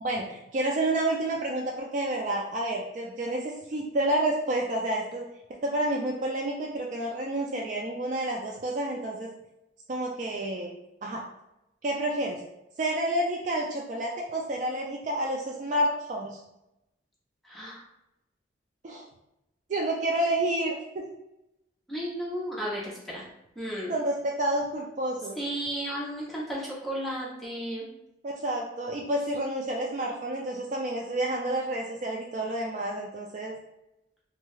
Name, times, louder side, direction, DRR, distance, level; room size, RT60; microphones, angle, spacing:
voice 1, 0.0-5.3 5.6-9.3 9.9-10.7 11.0-11.2 11.8-12.4 12.8-16.4 18.8-19.0 19.7-21.0 23.9-25.4 28.2-33.5, right 1 dB, 40° right, 0 dB, 0.3 m, -29 dB
voice 2, 17.4-17.8 21.9-23.2 23.6-24.0 25.4-27.9, equal, ahead, -6 dB, 0.7 m, -33 dB
2.7 x 2.3 x 3.1 m, 0.88 s
head